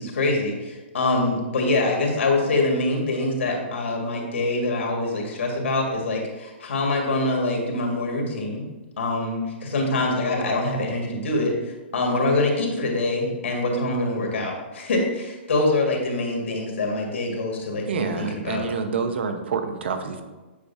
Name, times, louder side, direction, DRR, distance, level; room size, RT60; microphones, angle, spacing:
voice 1, 0.0-8.7 9.0-18.6, left 2 dB, 80° left, 0 dB, 1.9 m, -24 dB
voice 2, 17.9-20.2, right 5 dB, 65° right, 7 dB, 0.8 m, -27 dB
8.3 x 4.8 x 2.7 m, 1.2 s
hypercardioid pair, 165°, 7 cm